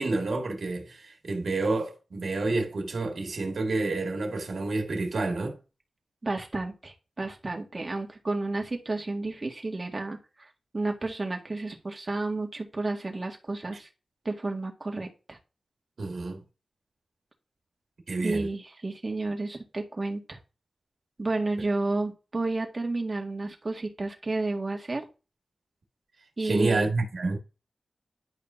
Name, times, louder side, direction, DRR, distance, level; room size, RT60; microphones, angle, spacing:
voice 1, 0.0-5.6 13.7-13.8 16.0-16.4 18.1-18.5 26.4-27.4, right 3 dB, 70° right, 1.9 m, -29 dB
voice 2, 6.2-10.5 10.7-13.9 14.3-15.4 18.2-20.4 21.2-25.0 26.4-26.8, right 2 dB, 40° right, 2.0 m, -31 dB
10.5 x 5.2 x 2.8 m
cardioid pair, 55°, 0 cm